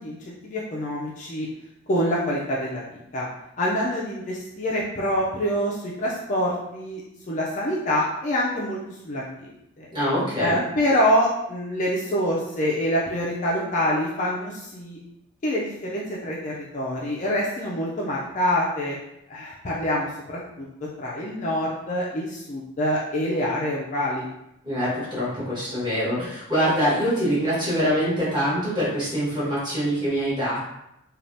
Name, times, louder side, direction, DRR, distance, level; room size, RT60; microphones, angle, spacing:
voice 1, 0.0-1.5 1.9-3.3 3.6-7.0 7.3-8.8 9.0-9.5 9.8-9.9 10.4-15.0 15.4-19.0 19.3-20.7 21.0-24.3, equal, 35° left, -5 dB, 0.4 m, -26 dB
voice 2, 9.9-10.6 24.6-30.6, equal, 20° right, -10 dB, 1.4 m, -24 dB
3.3 x 2.3 x 2.6 m, 0.83 s
head